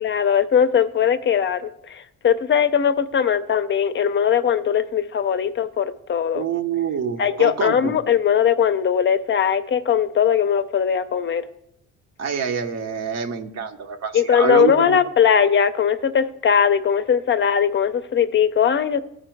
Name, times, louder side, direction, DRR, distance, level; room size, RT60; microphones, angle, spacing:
voice 1, 0.0-6.5 7.2-11.4 14.1-19.0, left 8 dB, 40° left, 11 dB, 0.5 m, -20 dB
voice 2, 6.3-8.0 12.2-15.0, right 7 dB, 60° right, 7 dB, 0.8 m, -26 dB
14.5 x 5.1 x 4.5 m, 0.80 s
cardioid pair, 90°, 30 cm